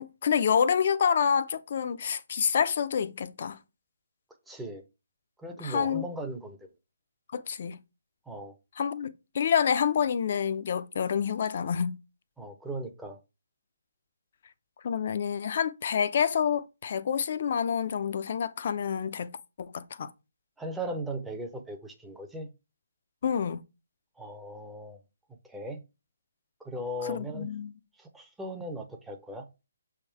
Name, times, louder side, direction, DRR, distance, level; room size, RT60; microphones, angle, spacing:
voice 1, 0.0-3.6 5.6-6.0 7.3-7.8 8.8-12.0 14.8-20.1 23.2-23.6 27.1-27.7, left 7 dB, 45° left, 0.6 m, -28 dB
voice 2, 4.5-4.8 5.4-6.6 8.3-8.6 12.4-13.2 20.6-22.5 24.2-25.0 25.4-25.8 26.6-27.5 28.0-29.4, right 1 dB, 5° right, 0.8 m, -37 dB
6.8 x 3.6 x 4.7 m
figure-of-eight pair, 140°, 0 cm